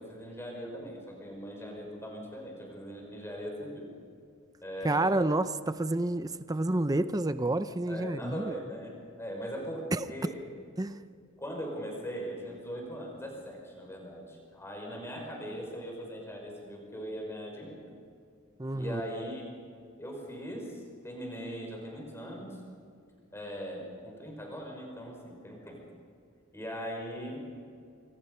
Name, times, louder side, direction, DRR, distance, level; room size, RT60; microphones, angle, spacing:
voice 1, 0.0-3.9 4.6-5.2 7.9-9.8 10.1-10.4 11.4-17.8 18.7-19.4 20.0-22.6 23.3-25.8 26.5-27.5, equal, 10° left, 0 dB, 5.9 m, -40 dB
voice 2, 4.8-8.6 9.9-10.0 10.8-11.0 18.6-19.0, right 2 dB, 15° right, 12 dB, 0.6 m, -29 dB
26.5 x 24.5 x 5.6 m, 2.3 s
head